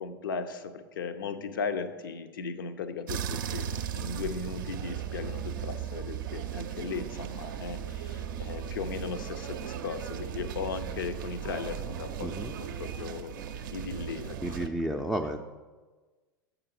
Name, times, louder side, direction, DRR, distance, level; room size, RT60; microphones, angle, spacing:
voice 1, 0.0-13.4 13.7-15.0, left 5 dB, 70° left, 9 dB, 0.6 m, -37 dB
sound 1, 3.1-14.7, right 9 dB, 65° right, 0.5 m, -37 dB
voice 2, 12.2-12.6 14.4-15.4, right 1 dB, ahead, 2 dB, 0.4 m, -32 dB
7.3 x 5.0 x 4.8 m, 1.3 s
figure-of-eight pair, 85°, 12 cm